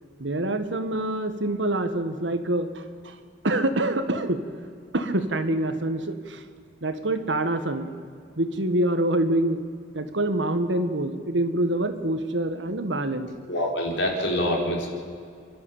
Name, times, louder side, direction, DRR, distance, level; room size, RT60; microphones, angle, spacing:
voice 1, 0.2-2.7 3.0-3.2 3.4-4.4 4.9-6.4 6.8-7.9 8.4-9.6 9.9-13.3, right 1 dB, 90° right, 9 dB, 1.6 m, -25 dB
voice 2, 13.5-14.9, left 1 dB, 85° left, 0 dB, 4.7 m, -25 dB
28.0 x 12.0 x 8.8 m, 2.3 s
head